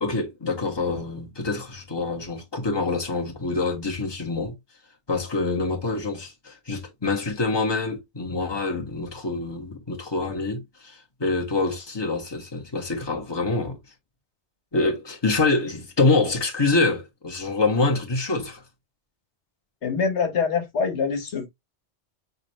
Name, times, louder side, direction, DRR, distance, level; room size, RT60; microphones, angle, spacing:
voice 1, 0.0-4.5 5.1-13.8 14.7-18.6, left 3 dB, 25° left, 1.5 m, -26 dB
voice 2, 19.8-21.5, left 5 dB, 80° left, 1.4 m, -24 dB
6.4 x 2.7 x 3.0 m
omnidirectional pair, 1.1 m